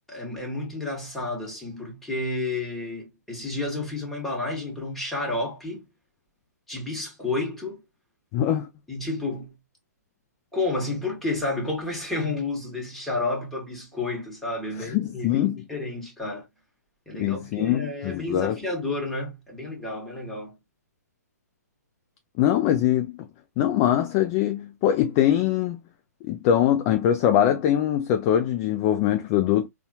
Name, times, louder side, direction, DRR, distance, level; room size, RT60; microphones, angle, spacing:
voice 1, 0.1-5.8 6.7-7.8 8.9-9.5 10.5-16.5 17.1-20.5, left 2 dB, 5° left, 1.3 m, -31 dB
voice 2, 8.3-8.7 14.9-15.6 17.2-18.6 22.4-23.1 23.6-25.8 26.2-29.7, left 11 dB, 25° left, 0.3 m, -22 dB
4.0 x 2.3 x 2.7 m
figure-of-eight pair, 125°, 9 cm